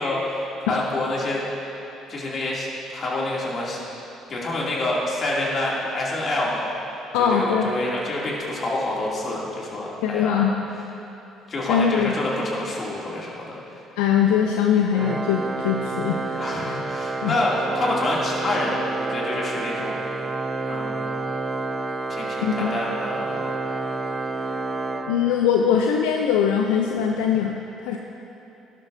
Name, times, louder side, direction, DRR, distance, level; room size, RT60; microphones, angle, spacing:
voice 1, 0.0-1.4 2.1-3.8 4.3-6.7 7.2-10.5 11.5-13.8 16.4-20.0 20.7-21.1 22.1-23.5, left 1 dB, 45° left, -4 dB, 2.6 m, -27 dB
voice 2, 7.1-7.7 10.0-10.6 11.7-12.1 14.0-16.8 17.2-17.4 22.4-22.7 25.1-28.0, left 8 dB, 80° left, 2 dB, 0.5 m, -22 dB
Organ, 14.9-25.7, right 3 dB, 25° right, 0.6 m, -29 dB
13.5 x 11.5 x 2.7 m, 3.0 s
hypercardioid pair, 60°, 0 cm